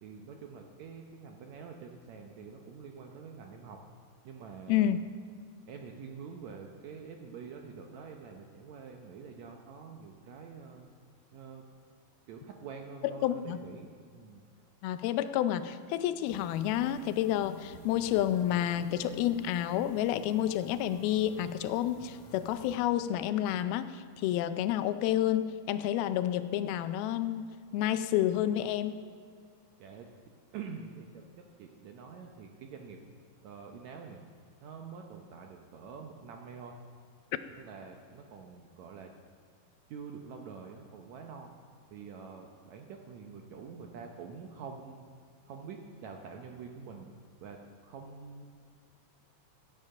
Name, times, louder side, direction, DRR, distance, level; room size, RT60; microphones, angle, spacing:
voice 1, 0.0-3.8 4.2-4.9 5.7-10.9 11.3-11.6 12.3-14.4 29.8-30.1 30.5-33.0 33.4-34.2 34.6-36.8 37.6-39.1 39.9-41.5 41.9-45.0 45.5-47.1 47.4-48.4, right 5 dB, 90° right, 2 dB, 1.5 m, -46 dB
voice 2, 4.7-5.0 13.2-13.6 14.8-27.5 27.7-29.0, left 11 dB, 85° left, 12 dB, 2.5 m, -29 dB
sound 1, 16.2-22.8, left 4 dB, 65° left, 2.7 m, -51 dB
15.5 x 9.1 x 5.7 m, 2.2 s
omnidirectional pair, 4.4 m